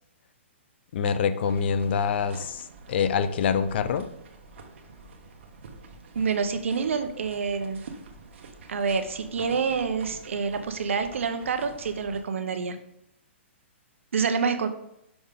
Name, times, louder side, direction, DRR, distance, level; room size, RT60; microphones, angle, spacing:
voice 1, 0.9-4.1, left 6 dB, 55° left, 12 dB, 0.5 m, -25 dB
sound 1, 1.4-12.2, right 4 dB, 65° right, 1.2 m, -47 dB
voice 2, 6.1-7.8 8.7-12.8 14.1-14.7, right 5 dB, 80° right, 8 dB, 0.8 m, -27 dB
6.1 x 3.7 x 5.1 m, 0.78 s
hypercardioid pair, 145°, 7 cm